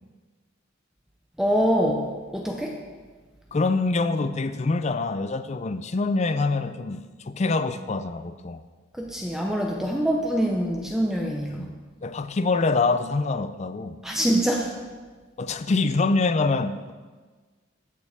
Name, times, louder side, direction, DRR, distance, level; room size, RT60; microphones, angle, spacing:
voice 1, 1.4-2.1 2.3-2.8 8.9-11.7 14.0-14.7, equal, 5° right, 0 dB, 0.7 m, -24 dB
voice 2, 3.5-8.6 11.5-11.7 12.0-14.0 15.4-16.9, left 3 dB, 35° left, 11 dB, 0.4 m, -25 dB
15.0 x 6.8 x 3.5 m, 1.4 s
head